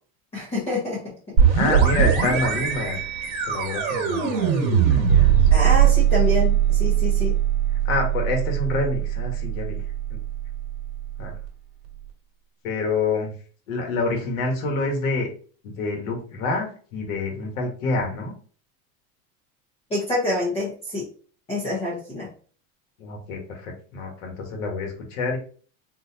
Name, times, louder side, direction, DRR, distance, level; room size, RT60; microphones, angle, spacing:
voice 1, 0.3-1.1 5.5-7.3 19.9-21.1 21.5-22.3, left 1 dB, 15° left, -5 dB, 0.9 m, -26 dB
sound 1, 1.4-10.9, right 9 dB, 60° right, 1.3 m, -20 dB
voice 2, 1.5-3.1 3.4-5.3 5.7-5.8 7.8-10.2 11.2-11.3 12.6-13.3 13.7-15.3 15.6-18.3 23.0-25.4, left 3 dB, 80° left, 1 dB, 1.5 m, -27 dB
4.0 x 2.6 x 2.7 m, 0.42 s
supercardioid pair, 165°, 40 cm